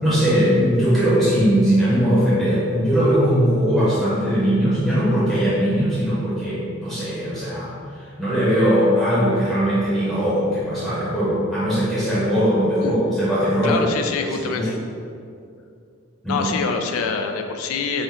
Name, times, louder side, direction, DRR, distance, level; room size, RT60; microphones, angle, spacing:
voice 1, 0.0-13.8 14.2-14.7 16.2-16.4, equal, ahead, -11 dB, 0.7 m, -20 dB
voice 2, 13.6-14.8 16.3-18.0, left 5 dB, 80° left, 5 dB, 0.3 m, -25 dB
3.7 x 2.1 x 4.2 m, 2.4 s
head